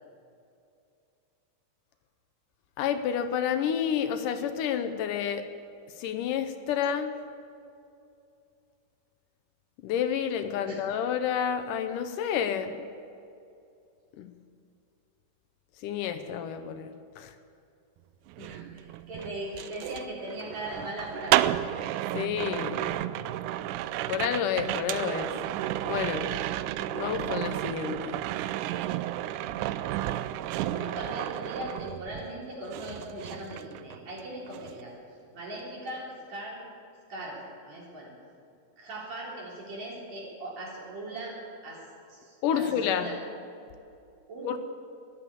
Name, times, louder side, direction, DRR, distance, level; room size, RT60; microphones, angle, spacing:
voice 1, 2.8-5.4 6.0-7.1 9.8-12.9 14.2-14.3 15.8-17.3 22.1-22.8 24.1-25.3 25.9-26.3 26.9-28.2 42.4-43.1 44.4-44.6, left 8 dB, 80° left, 8 dB, 2.3 m, -29 dB
sound 1, 18.3-32.4 32.7-34.2 34.5-34.8, right 13 dB, 80° right, 1.9 m, -32 dB
voice 2, 18.4-21.7 30.7-34.9 35.3-36.0 36.3-36.6 37.1-37.4 37.6-38.1 38.8-41.3 41.6-41.8 42.1-43.2 44.3-44.6, right 1 dB, 55° right, -4 dB, 4.8 m, -39 dB
14.0 x 11.5 x 8.5 m, 2.6 s
omnidirectional pair, 3.8 m